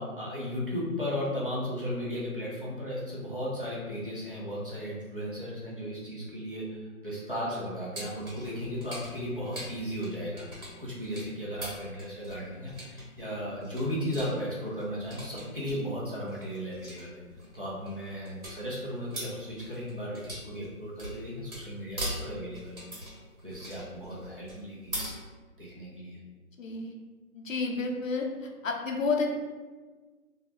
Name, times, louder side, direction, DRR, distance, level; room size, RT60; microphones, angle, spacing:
voice 1, 0.0-17.2 17.5-22.8 23.4-24.9 25.6-26.2, equal, 40° right, -6 dB, 0.5 m, -35 dB
sound 1, 7.9-25.1, right 1 dB, 70° right, 1.3 m, -42 dB
voice 2, 26.6-26.9 27.3-28.3 28.6-29.3, left 4 dB, 60° left, 2 dB, 0.5 m, -30 dB
2.3 x 2.0 x 2.8 m, 1.4 s
figure-of-eight pair, 170°, 44 cm